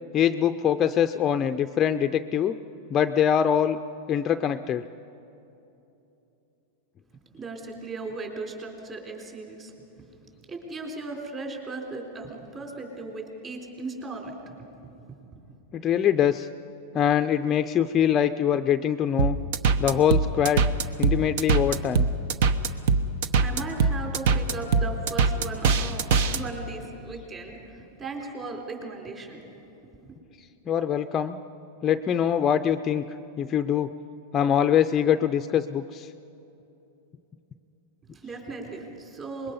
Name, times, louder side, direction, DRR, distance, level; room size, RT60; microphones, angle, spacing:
voice 1, 0.1-2.6 2.9-3.8 4.1-4.8 15.7-16.5 16.9-19.4 19.8-20.7 21.0-22.1 30.7-31.4 31.8-33.0 33.4-33.9 34.3-36.1, left 9 dB, 25° left, 8 dB, 0.5 m, -23 dB
voice 2, 7.3-9.7 10.0-14.5 15.1-15.2 23.4-29.5 38.1-39.5, right 3 dB, 25° right, 0 dB, 4.0 m, -37 dB
sound 1, 19.2-26.4, right 5 dB, 65° right, 1.0 m, -22 dB
25.0 x 21.5 x 5.5 m, 2.9 s
supercardioid pair, 145°, 0 cm